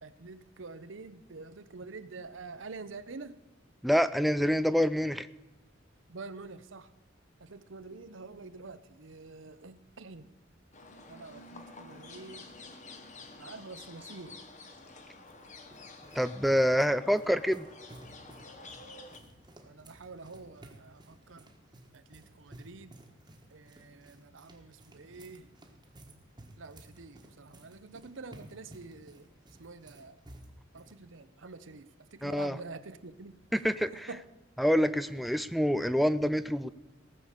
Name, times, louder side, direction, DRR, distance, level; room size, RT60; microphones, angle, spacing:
voice 1, 0.0-3.4 6.1-6.9 7.4-10.3 11.1-12.5 13.4-14.4 16.4-17.0 17.3-17.4 19.6-21.5 21.9-22.9 23.5-25.5 26.6-29.3 29.6-30.2 30.7-33.4 33.9-34.2, right 3 dB, 80° right, 13 dB, 0.8 m, -47 dB
voice 2, 3.8-5.3 16.2-17.7 32.2-32.6 33.5-34.1 34.6-36.7, equal, ahead, 12 dB, 0.3 m, -26 dB
sound 1, 10.7-19.2, left 3 dB, 40° left, 1.3 m, -50 dB
sound 2, 14.8-31.0, right 1 dB, 20° right, 1.5 m, -55 dB
18.0 x 7.1 x 6.6 m, 1.1 s
head